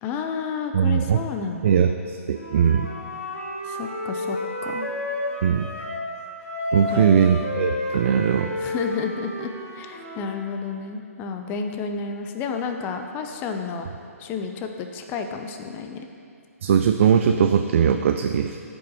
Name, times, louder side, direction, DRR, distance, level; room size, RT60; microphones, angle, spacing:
voice 1, 0.0-1.9 3.6-4.9 6.9-7.2 8.6-13.9 14.2-16.1, left 5 dB, 25° left, 5 dB, 0.6 m, -31 dB
voice 2, 0.7-1.2 1.6-2.9 5.4-5.7 6.7-8.5 16.6-18.6, right 7 dB, 55° right, 7 dB, 0.3 m, -20 dB
Wind instrument woodwind instrument, 2.3-6.1 6.4-10.4, left 2 dB, 75° left, 2.1 m, -31 dB
14.0 x 5.2 x 3.0 m, 2.4 s
figure-of-eight pair, 130°, 8 cm